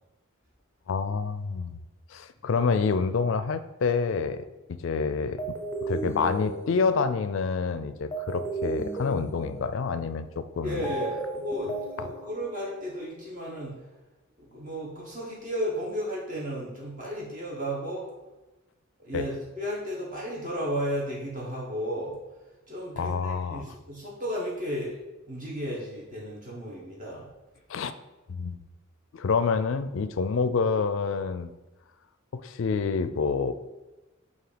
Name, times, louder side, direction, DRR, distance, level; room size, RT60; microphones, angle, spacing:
voice 1, 0.9-1.8 2.1-5.4 5.8-10.8 12.0-12.1 19.1-19.2 23.0-23.7 27.7-27.9 28.3-28.6 29.1-31.5 32.3-33.5, left 5 dB, 70° left, 12 dB, 0.4 m, -27 dB
sound 1, 5.4-13.0, right 2 dB, 15° left, 0.7 m, -35 dB
voice 2, 10.6-11.7 12.0-13.7 14.4-18.1 19.0-22.1 22.7-25.0 25.3-27.3, equal, 40° right, -4 dB, 1.2 m, -33 dB
7.7 x 2.8 x 5.0 m, 1.1 s
head